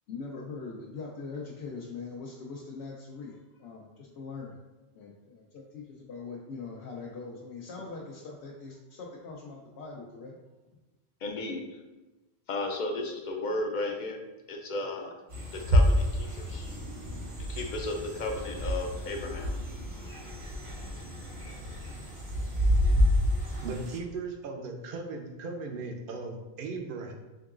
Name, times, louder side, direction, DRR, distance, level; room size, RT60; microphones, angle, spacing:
voice 1, 0.1-4.5 4.9-10.4, left 4 dB, 80° left, -3 dB, 0.8 m, -42 dB
voice 2, 11.2-11.8 12.5-14.2 14.5-15.2 15.5-16.7 17.5-19.5, left 2 dB, 55° left, 2 dB, 0.6 m, -34 dB
sound 1, 15.3-24.0, equal, 80° right, 1.8 m, -28 dB
voice 3, 23.6-27.1, right 3 dB, 65° right, 3 dB, 0.7 m, -37 dB
3.7 x 3.7 x 2.4 m, 1.1 s
omnidirectional pair, 1.1 m